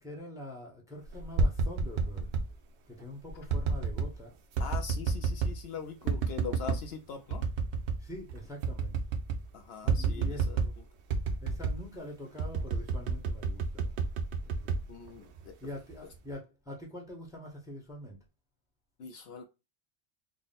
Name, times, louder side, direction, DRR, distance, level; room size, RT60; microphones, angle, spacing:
voice 1, 0.0-2.3 2.9-4.3 8.0-9.0 9.8-10.4 11.4-13.9 14.4-14.8 15.1-15.3 15.6-18.2, left 1 dB, 5° right, 0.9 m, -44 dB
sound 1, 1.1-2.5 3.5-4.1 4.6-5.6 6.1-6.8 7.3-8.0 8.3-8.4 8.6-9.5 9.9-10.8 11.1-11.8 12.4-15.5 15.9-16.3, right 4 dB, 75° right, 0.9 m, -30 dB
voice 2, 4.6-7.4 9.5-10.7 14.9-15.6 19.0-19.4, left 5 dB, 70° left, 0.8 m, -42 dB
3.6 x 2.1 x 4.0 m
omnidirectional pair, 1.2 m